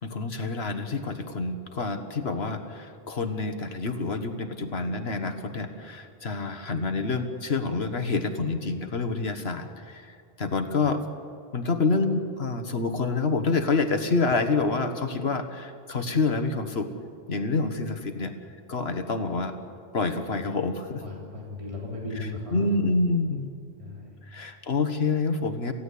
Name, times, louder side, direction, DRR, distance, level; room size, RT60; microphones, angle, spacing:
voice 1, 0.0-11.0 11.5-16.9 17.3-18.3 18.7-19.5 19.9-21.0 22.1-23.5 24.3-25.7, left 3 dB, 75° left, 7 dB, 1.7 m, -27 dB
voice 2, 21.0-22.7 23.8-24.2, left 2 dB, 30° right, -3 dB, 3.6 m, -36 dB
27.5 x 16.0 x 8.5 m, 2.3 s
omnidirectional pair, 1.1 m